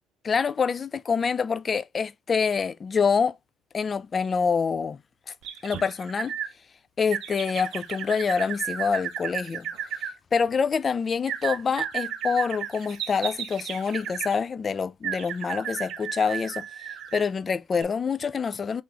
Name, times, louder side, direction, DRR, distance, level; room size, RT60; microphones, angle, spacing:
voice 1, 0.2-3.4 3.7-5.0 5.3-5.4 5.6-6.3 7.0-9.7 10.3-16.7 17.1-18.8, left 5 dB, 35° left, 0.4 m, -26 dB
sound 1, 5.4-6.5 7.1-10.1 11.3-14.4 15.0-17.3 17.8-17.9, right 9 dB, 65° right, 0.7 m, -34 dB
3.4 x 3.0 x 3.8 m
supercardioid pair, 80°, 0 cm